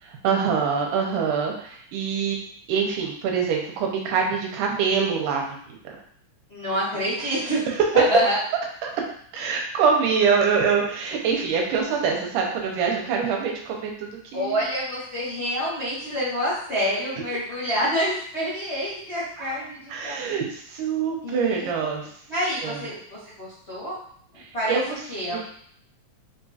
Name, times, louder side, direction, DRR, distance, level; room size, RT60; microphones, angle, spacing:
voice 1, 0.0-2.4 2.7-6.0 8.8-8.9 9.3-14.5 19.4-19.5 19.9-22.0 22.6-22.8 24.4-25.0 25.3-25.4, right 6 dB, 85° right, 1 dB, 2.2 m, -25 dB
voice 2, 6.5-7.6 7.9-8.4 14.3-20.4 21.2-21.8 22.3-24.0 24.5-24.8 25.1-25.4, equal, 70° left, -11 dB, 0.6 m, -27 dB
5.0 x 2.4 x 2.7 m, 0.62 s
omnidirectional pair, 3.7 m